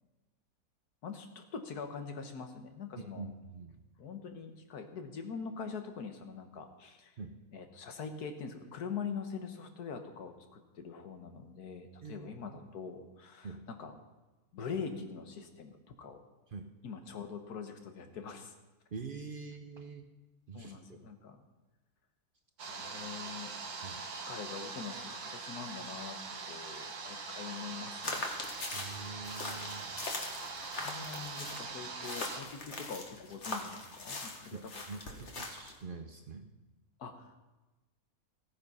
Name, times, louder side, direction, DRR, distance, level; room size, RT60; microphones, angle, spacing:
voice 1, 1.0-3.2 4.0-7.2 7.5-13.9 14.5-16.2 16.8-18.5 20.5-21.4 22.7-23.5 24.1-26.2 26.5-28.4 30.7-34.6 35.1-35.2 37.0-37.4, left 5 dB, 90° left, 6 dB, 1.7 m, -43 dB
voice 2, 3.0-3.8 7.2-7.4 12.0-12.7 13.4-13.7 16.5-16.7 18.9-20.1 20.5-20.8 23.8-24.0 28.7-29.9 34.5-36.5, right 4 dB, 45° right, 5 dB, 0.7 m, -45 dB
sound 1, 22.6-32.4, right 4 dB, 85° right, 1.8 m, -42 dB
sound 2, 28.0-35.8, left 3 dB, 50° left, 1.7 m, -41 dB
15.0 x 9.3 x 5.5 m, 1.1 s
omnidirectional pair, 1.6 m